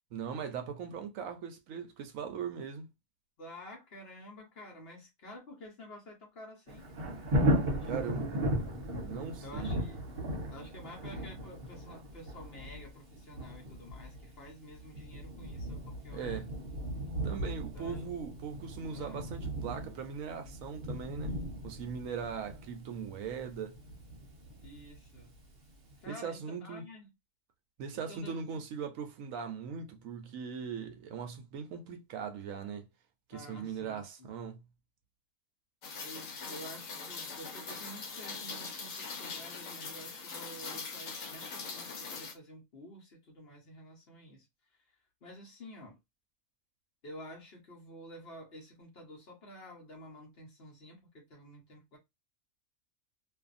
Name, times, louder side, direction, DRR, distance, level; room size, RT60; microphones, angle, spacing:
voice 1, 0.1-2.9 7.9-8.3 9.1-9.7 16.1-16.5 17.2-21.3 21.6-23.8 26.1-26.8 27.8-32.9 33.3-34.6, right 6 dB, 70° right, 0.9 m, -40 dB
voice 2, 3.4-6.9 7.8-8.3 9.4-10.0 10.5-16.4 17.7-18.1 18.9-19.3 24.6-25.3 26.0-27.1 28.1-28.6 33.3-34.4 36.0-44.5 44.7-44.8 45.2-46.0 47.0-52.0, equal, 50° left, 1.1 m, -50 dB
Thunder, 6.7-25.4 25.9-26.0, equal, 45° right, 1.0 m, -36 dB
Rain, 35.8-42.3, left 4 dB, 70° left, 1.2 m, -42 dB
2.6 x 2.5 x 2.4 m
omnidirectional pair, 1.5 m